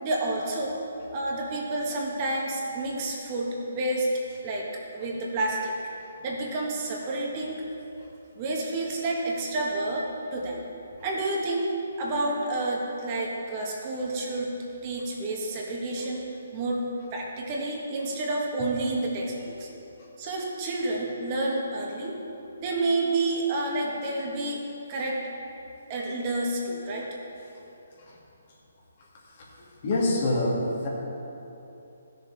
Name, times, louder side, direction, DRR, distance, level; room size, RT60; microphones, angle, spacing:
voice 1, 0.0-0.8 1.1-4.7 4.9-5.7 6.2-7.6 8.3-10.6 11.0-11.7 12.0-14.5 14.8-16.2 16.5-16.8 17.1-19.7 20.2-22.2 22.6-24.6 24.9-25.2 25.9-27.1, right 2 dB, 35° right, -2 dB, 1.7 m, -29 dB
voice 2, 29.6-30.9, left 1 dB, 45° left, -4 dB, 2.5 m, -26 dB
14.0 x 6.9 x 4.2 m, 2.9 s
figure-of-eight pair, 140°, 0 cm